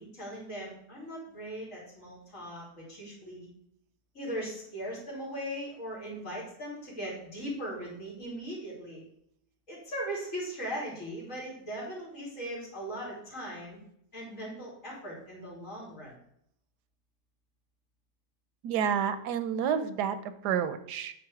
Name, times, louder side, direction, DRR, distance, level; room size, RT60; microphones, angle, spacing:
voice 1, 0.0-3.5 4.1-9.0 9.7-13.8 14.1-16.2, equal, 50° left, -5 dB, 3.4 m, -39 dB
voice 2, 18.6-20.2 20.4-21.1, right 8 dB, 90° right, 11 dB, 1.2 m, -29 dB
8.8 x 4.2 x 4.8 m, 0.72 s
omnidirectional pair, 1.7 m